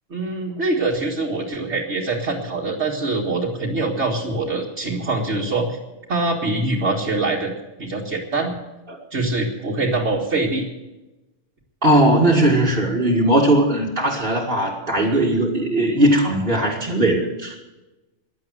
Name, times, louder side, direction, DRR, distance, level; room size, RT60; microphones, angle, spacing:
voice 1, 0.1-5.8 6.1-7.5 7.8-8.5 9.1-10.7, right 2 dB, 60° right, -3 dB, 2.2 m, -24 dB
voice 2, 11.8-17.6, right 1 dB, 45° right, -5 dB, 2.3 m, -18 dB
15.5 x 11.0 x 7.9 m, 1.0 s
omnidirectional pair, 1.3 m